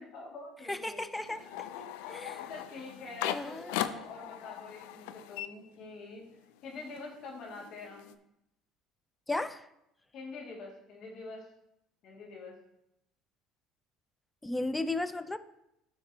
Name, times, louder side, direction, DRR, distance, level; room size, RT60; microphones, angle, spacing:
voice 1, 0.0-1.0 1.4-6.2 6.6-8.1 10.1-11.5 12.0-12.6, left 3 dB, 60° left, -1 dB, 2.2 m, -46 dB
voice 2, 0.7-1.4 2.1-2.5 3.2-3.8 9.3-9.7 14.4-15.4, left 2 dB, 10° left, 12 dB, 0.5 m, -34 dB
sound 1, 1.1-6.3 6.6-8.1, left 12 dB, 80° left, 0.4 m, -39 dB
12.5 x 4.5 x 2.8 m, 0.83 s
supercardioid pair, 80°, 0 cm